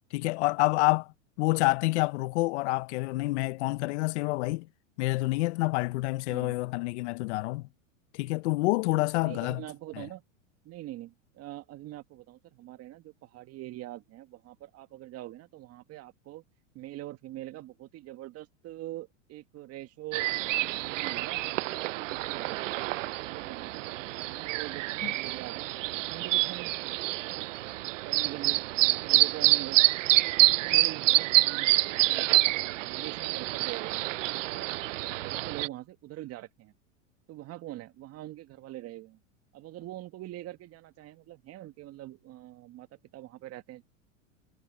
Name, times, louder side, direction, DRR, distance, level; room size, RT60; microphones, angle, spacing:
voice 1, 0.1-1.1 1.4-4.7 5.0-7.7 8.1-9.6 10.0-10.1 25.0-25.1, left 21 dB, 60° left, 1.0 m, -28 dB
voice 2, 9.2-10.2 10.6-16.4 16.7-20.3 20.6-22.7 23.3-26.7 27.2-27.5 28.0-29.8 30.2-34.9 35.2-36.7 37.3-39.2 39.5-43.8, right 15 dB, 40° right, 1.9 m, -44 dB
sound 1, 20.1-35.7, right 18 dB, 75° right, 0.6 m, -27 dB
hypercardioid pair, 110°, 38 cm